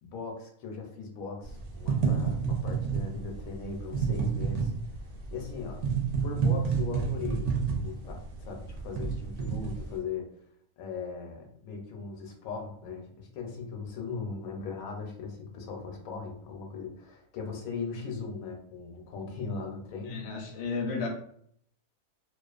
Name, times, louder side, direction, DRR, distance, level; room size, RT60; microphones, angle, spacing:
voice 1, 0.0-4.7 5.3-5.8 6.2-7.5 7.8-10.3 10.8-20.2, left 5 dB, 85° left, 2 dB, 1.0 m, -39 dB
sound 1, 1.4-10.0, right 6 dB, 65° right, 0.8 m, -30 dB
voice 2, 20.1-21.1, left 4 dB, 60° left, 1 dB, 0.7 m, -33 dB
2.4 x 2.3 x 2.3 m, 0.65 s
omnidirectional pair, 1.4 m